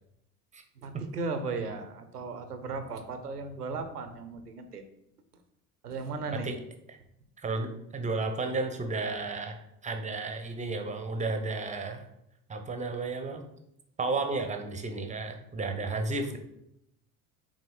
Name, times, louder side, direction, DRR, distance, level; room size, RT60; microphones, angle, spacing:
voice 1, 0.8-4.8 5.8-6.5, right 4 dB, 80° right, 8 dB, 0.9 m, -36 dB
voice 2, 7.4-12.0 12.5-13.4 14.0-16.4, right 3 dB, 15° right, 5 dB, 0.9 m, -33 dB
6.2 x 4.3 x 4.7 m, 0.80 s
figure-of-eight pair, 70°, 46 cm